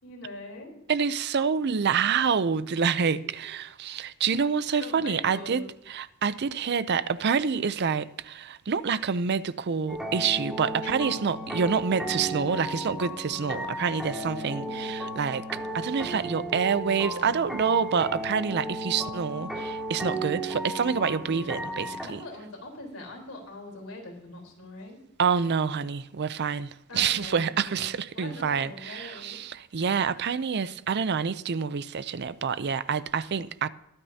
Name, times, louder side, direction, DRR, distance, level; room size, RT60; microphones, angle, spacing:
voice 1, 0.0-0.7 3.2-3.3 4.8-5.7 10.8-11.3 14.2-14.9 22.0-25.0 26.9-29.4, left 2 dB, 65° left, 3.9 m, -42 dB
voice 2, 0.9-22.2 25.2-33.7, right 6 dB, 50° right, 0.5 m, -27 dB
sound 1, 9.9-22.1, right 1 dB, 5° right, 2.1 m, -34 dB
22.0 x 8.9 x 2.8 m
head